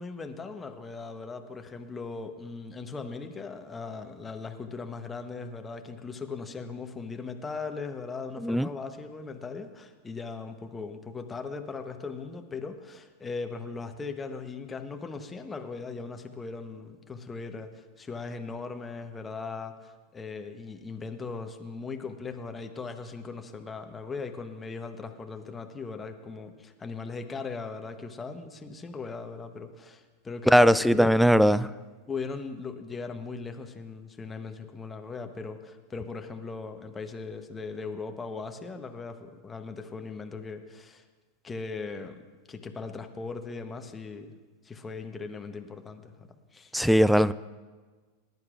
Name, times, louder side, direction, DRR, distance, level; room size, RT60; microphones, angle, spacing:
voice 1, 0.0-31.1 32.1-41.0 41.4-42.2 42.5-44.3 44.6-46.7, left 4 dB, 20° left, 1.0 m, -39 dB
voice 2, 30.5-31.7 46.7-47.3, equal, ahead, 0.3 m, -20 dB
20.0 x 11.0 x 2.5 m
hypercardioid pair, 95°, 0 cm